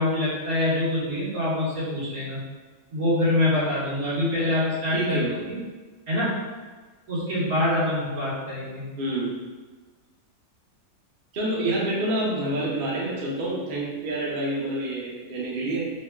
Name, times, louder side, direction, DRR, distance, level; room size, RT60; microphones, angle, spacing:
voice 1, 0.0-2.4 2.9-5.2 5.5-5.6 6.1-6.4 7.1-8.8 11.6-11.8, left 1 dB, 75° right, -9 dB, 1.9 m, -25 dB
voice 2, 4.9-5.5 9.0-9.3 11.3-16.0, right 1 dB, 45° right, -5 dB, 0.8 m, -28 dB
3.7 x 3.4 x 2.3 m, 1.3 s
omnidirectional pair, 1.5 m